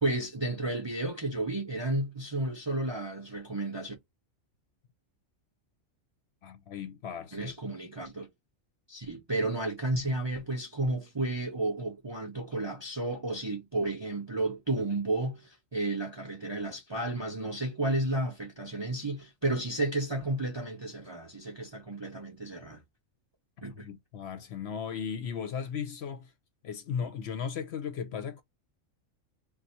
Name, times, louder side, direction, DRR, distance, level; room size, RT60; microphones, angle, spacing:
voice 1, 0.0-3.9 7.3-8.3 8.9-22.8 23.6-23.9, right 2 dB, 30° right, 0.5 m, -32 dB
voice 2, 6.4-7.5 23.7-26.3 26.6-28.4, left 7 dB, 60° left, 0.8 m, -36 dB
2.6 x 2.3 x 4.1 m
omnidirectional pair, 1.4 m